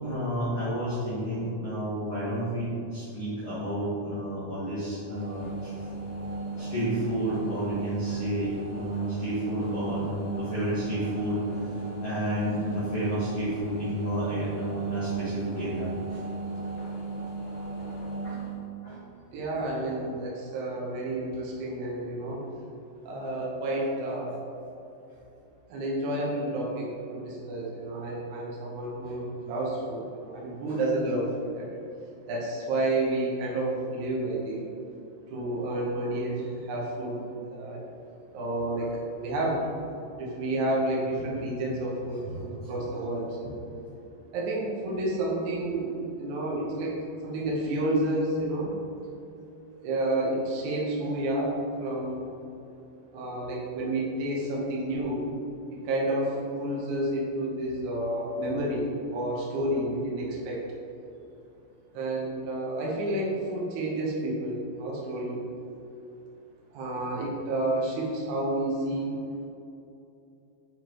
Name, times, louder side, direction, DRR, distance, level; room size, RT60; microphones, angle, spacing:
voice 1, 0.0-5.7 6.6-16.2 18.2-18.4 18.8-19.0 42.6-42.7, equal, 60° left, -12 dB, 1.5 m, -31 dB
sound 1, 5.0-18.6, right 3 dB, 75° left, 1.8 m, -35 dB
voice 2, 19.3-22.4 23.1-24.4 25.7-26.9 27.1-31.8 32.3-34.6 35.3-37.2 37.5-37.8 38.3-38.9 39.2-39.7 40.1-43.6 44.3-47.0 47.2-48.7 49.8-52.3 53.1-55.2 55.7-60.6 61.9-65.4 66.7-69.1, right 1 dB, 75° right, -4 dB, 1.8 m, -30 dB
7.3 x 4.6 x 3.0 m, 2.8 s
omnidirectional pair, 4.8 m